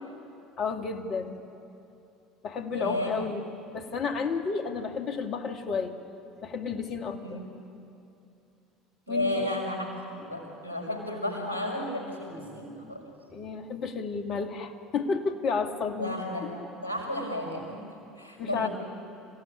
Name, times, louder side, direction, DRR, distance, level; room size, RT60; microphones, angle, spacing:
voice 1, 0.6-1.4 2.4-3.4 3.7-5.9 6.4-7.4 9.1-9.5 13.3-16.2 18.4-18.7, left 5 dB, 45° left, 6 dB, 2.3 m, -31 dB
voice 2, 2.7-3.1 7.1-7.5 9.1-13.0 16.0-16.5 16.8-18.7, left 1 dB, 85° right, 0 dB, 5.6 m, -33 dB
27.5 x 17.0 x 9.8 m, 2.7 s
figure-of-eight pair, 65°, 0 cm